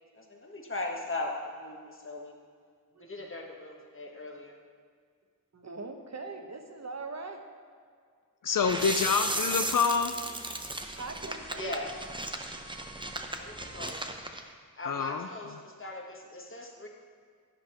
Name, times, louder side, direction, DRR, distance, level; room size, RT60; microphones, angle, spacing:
voice 1, 0.1-2.3 3.0-4.5 8.9-9.0 11.5-12.0 13.4-14.1 14.8-16.9, left 2 dB, 35° left, 1 dB, 1.4 m, -39 dB
voice 2, 5.5-7.4 10.9-11.8, right 3 dB, 45° right, 4 dB, 0.9 m, -41 dB
voice 3, 8.4-10.1 14.9-15.3, left 6 dB, 60° left, 8 dB, 0.5 m, -27 dB
sound 1, 8.6-14.4, right 2 dB, 15° right, 0.7 m, -35 dB
10.0 x 5.1 x 5.6 m, 2.1 s
cardioid pair, 55°, 36 cm